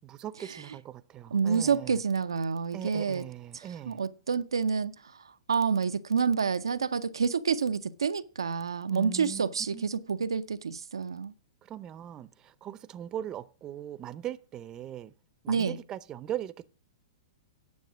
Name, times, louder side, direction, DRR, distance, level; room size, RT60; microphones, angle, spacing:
voice 1, 0.0-2.0 2.7-4.0 8.9-9.4 9.7-10.1 11.6-15.1 15.4-16.7, right 11 dB, 25° right, 0.6 m, -40 dB
voice 2, 1.3-3.2 3.5-11.3 15.5-15.8, right 6 dB, 85° right, 0.6 m, -28 dB
9.5 x 7.0 x 6.1 m
hypercardioid pair, 115°, 2 cm